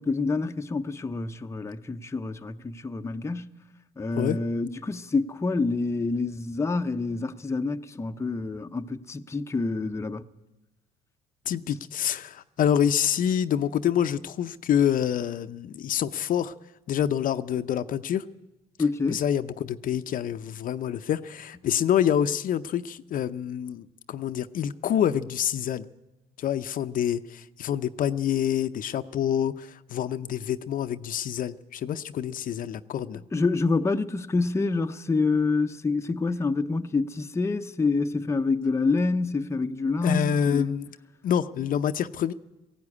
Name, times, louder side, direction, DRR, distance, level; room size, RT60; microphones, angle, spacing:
voice 1, 0.0-3.5 4.0-10.2 18.8-19.2 33.3-40.7, left 3 dB, 15° left, 0.8 m, -27 dB
voice 2, 11.5-16.5 16.9-18.2 19.1-25.9 26.4-33.2 40.0-40.9 41.2-42.3, left 9 dB, 55° left, 0.7 m, -27 dB
18.0 x 15.5 x 9.8 m
cardioid pair, 110°, 17 cm